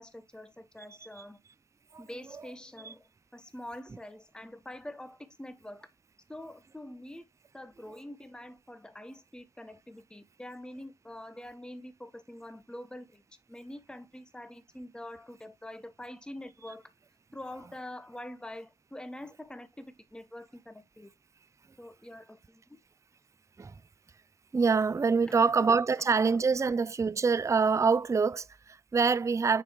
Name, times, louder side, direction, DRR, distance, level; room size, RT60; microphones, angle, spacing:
voice 1, 0.0-1.4 2.0-3.0 3.3-5.9 6.3-7.2 7.5-13.2 13.5-16.9 17.3-21.1 21.8-22.8 25.2-25.7 26.0-26.1 26.6-26.7, left 1 dB, 5° left, 1.0 m, -45 dB
voice 2, 24.5-29.6, right 5 dB, 20° right, 0.4 m, -25 dB
6.7 x 5.8 x 3.0 m
supercardioid pair, 55°, 16 cm